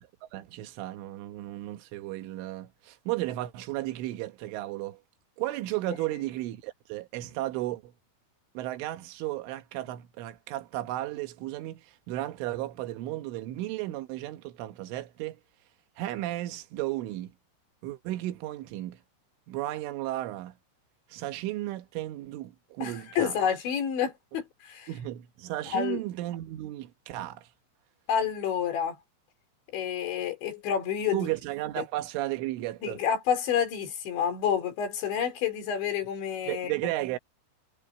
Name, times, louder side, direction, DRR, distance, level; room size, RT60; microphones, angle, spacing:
voice 1, 0.2-5.0 5.4-7.9 8.6-15.4 16.0-17.3 17.8-19.0 19.5-20.6 21.1-23.4 24.9-27.5 31.1-33.0 36.5-37.2, right 16 dB, 85° right, 3.8 m, -34 dB
voice 2, 22.8-24.9 25.7-26.0 28.1-29.0 29.7-31.3 32.8-36.7, left 8 dB, 70° left, 6.3 m, -29 dB
omnidirectional pair, 5.4 m